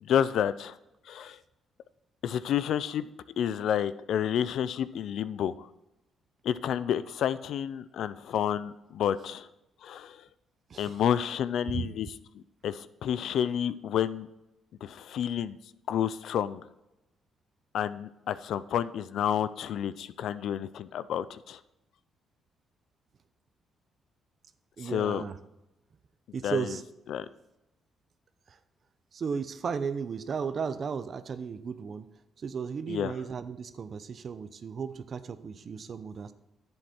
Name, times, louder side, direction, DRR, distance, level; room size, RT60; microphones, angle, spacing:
voice 1, 0.0-0.8 1.1-1.4 2.2-3.1 3.4-5.7 6.4-9.5 9.8-10.2 10.8-12.1 12.3-14.3 14.8-15.6 15.9-16.6 17.7-21.6 24.8-25.2 26.4-26.7 27.1-27.3 32.9-33.1, left 9 dB, 75° left, 15 dB, 0.5 m, -30 dB
voice 2, 10.7-11.0 11.7-11.9 24.8-25.4 26.3-26.8 28.5-28.6 29.1-32.1 32.4-36.3, right 6 dB, 50° right, 13 dB, 0.8 m, -35 dB
10.5 x 7.8 x 4.4 m, 0.95 s
cardioid pair, 90°, 0 cm